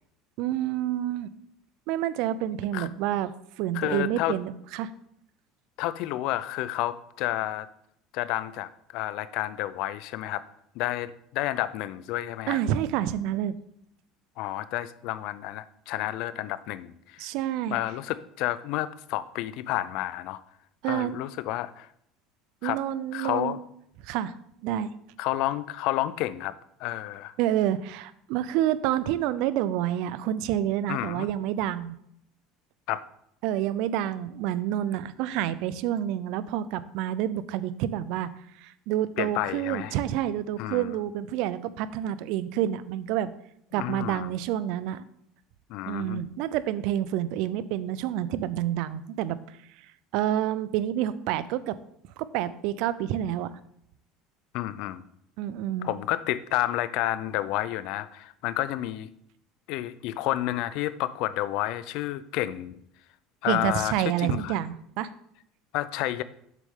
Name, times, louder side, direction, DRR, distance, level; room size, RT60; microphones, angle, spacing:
voice 1, 0.4-1.3 1.9-4.9 12.5-13.5 17.2-17.8 20.8-21.2 22.6-23.6 24.0-24.3 24.6-24.9 27.4-32.0 33.4-38.3 38.6-43.3 43.7-45.0 45.9-49.4 50.1-51.8 52.2-53.6 55.4-55.9 63.5-65.1, right 11 dB, 60° right, 16 dB, 0.4 m, -28 dB
voice 2, 3.7-4.4 5.8-7.7 8.1-10.4 10.8-12.6 14.4-17.3 17.7-20.4 20.8-21.9 22.6-22.8 23.1-23.6 25.2-26.5 26.8-27.3 30.9-31.3 32.9-33.0 39.2-40.0 40.6-40.9 43.7-44.3 45.7-46.3 54.5-55.0 55.8-59.1 59.7-62.8 63.4-64.5 65.7-66.2, left 15 dB, 55° left, 16 dB, 0.4 m, -30 dB
7.5 x 6.2 x 3.6 m, 0.73 s
cardioid pair, 170°, 0 cm